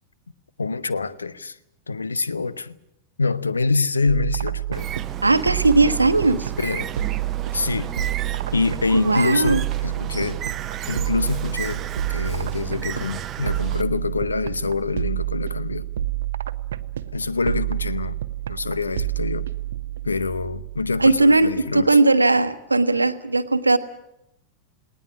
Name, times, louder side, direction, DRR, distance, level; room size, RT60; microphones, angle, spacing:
voice 1, 0.6-1.6 1.9-2.8 3.2-4.9 6.6-6.9 7.5-7.9 8.5-10.4 10.9-15.9 17.1-18.2 18.5-19.5 20.0-21.9, left 4 dB, 75° left, 0.8 m, -25 dB
sound 1, 4.1-21.7, right 14 dB, 65° right, 0.8 m, -29 dB
Bird, 4.7-13.8, right 9 dB, 30° right, 0.8 m, -34 dB
voice 2, 5.2-6.5 8.9-9.6 21.0-23.8, right 3 dB, 80° right, 1.1 m, -18 dB
19.5 x 18.5 x 9.7 m
figure-of-eight pair, 90°, 0 cm